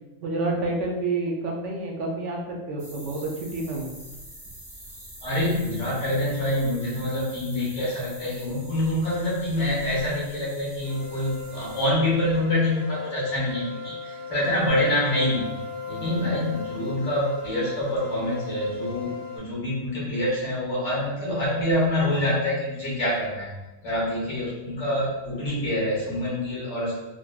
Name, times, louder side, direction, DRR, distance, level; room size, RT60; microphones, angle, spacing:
voice 1, 0.2-3.9, right 2 dB, 75° right, 0 dB, 0.9 m, -29 dB
sound 1, 2.8-11.9, right 1 dB, 25° right, 0.7 m, -45 dB
voice 2, 5.2-15.5 15.9-23.5 23.8-26.9, left 1 dB, 70° left, -6 dB, 1.4 m, -26 dB
sound 2, 10.8-19.4, left 4 dB, 30° left, 0.6 m, -37 dB
3.9 x 2.2 x 2.3 m, 1.1 s
omnidirectional pair, 1.3 m